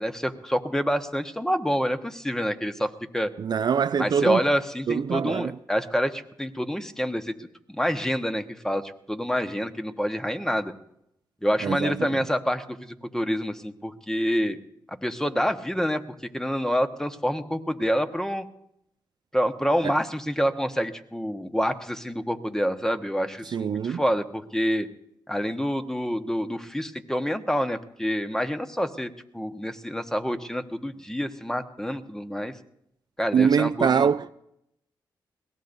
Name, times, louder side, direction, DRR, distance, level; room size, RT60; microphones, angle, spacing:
voice 1, 0.0-3.3 4.0-10.7 11.4-14.6 14.9-16.0 16.3-18.5 19.3-24.9 25.3-32.5 33.2-34.1, equal, 5° left, 1.2 m, -27 dB
voice 2, 3.4-4.4 4.9-5.5 11.6-12.2 19.8-19.9 23.5-24.0 33.3-34.3, right 7 dB, 60° right, 0.4 m, -23 dB
21.5 x 17.5 x 2.7 m
cardioid pair, 55°, 8 cm